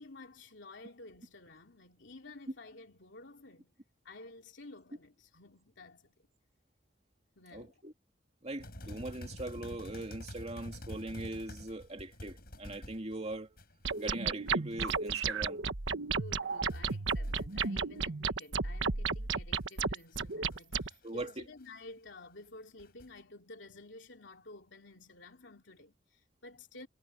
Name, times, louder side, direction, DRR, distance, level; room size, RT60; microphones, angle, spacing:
voice 1, 0.0-3.7 4.0-6.3 7.3-7.8 16.1-26.9, left 2 dB, 70° left, 3.1 m, -52 dB
voice 2, 7.5-7.9 8.4-13.6 14.0-15.6 21.0-21.4, right 2 dB, 35° right, 2.6 m, -41 dB
sound 1, 8.6-14.1 14.5-15.1 16.3-17.7 18.0-18.1 19.8-21.3 21.6-21.7 22.8-23.2, left 1 dB, 55° left, 7.4 m, -48 dB
sound 2, 13.9-20.9, right 5 dB, 90° right, 1.3 m, -33 dB
head